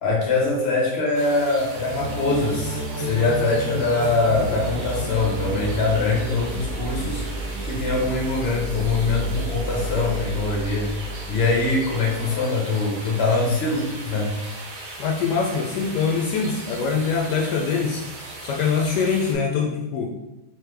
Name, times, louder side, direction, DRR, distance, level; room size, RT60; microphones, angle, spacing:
voice 1, 0.0-7.2 7.6-10.9 11.3-14.3, left 3 dB, 45° left, -2 dB, 1.1 m, -23 dB
sound 1, 1.1-19.3, right 2 dB, 80° right, 1.6 m, -38 dB
sound 2, 1.7-12.3, right 1 dB, 55° right, 0.5 m, -31 dB
voice 2, 15.0-18.0 18.4-20.1, left 5 dB, 75° left, 0 dB, 1.1 m, -23 dB
3.7 x 3.2 x 3.3 m, 0.93 s
omnidirectional pair, 1.8 m